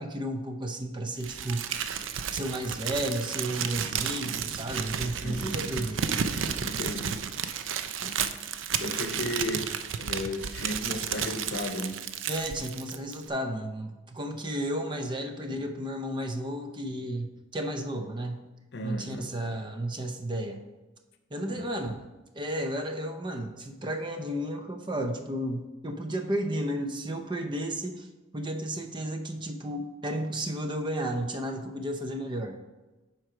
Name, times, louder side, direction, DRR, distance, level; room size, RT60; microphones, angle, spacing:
voice 1, 0.0-2.0 2.3-6.1 12.3-18.5 18.8-20.6 21.3-22.1 22.3-28.1 28.3-32.6, right 1 dB, 25° right, 6 dB, 0.6 m, -33 dB
Crumpling crinkling, 1.2-13.3, right 7 dB, 90° right, 0.5 m, -32 dB
voice 2, 5.2-5.9 6.6-7.2 8.0-8.3 8.8-9.7 10.0-12.0 18.7-19.3 21.5-21.7, left 1 dB, 60° left, 7 dB, 0.8 m, -35 dB
7.8 x 4.5 x 5.0 m, 1.1 s
head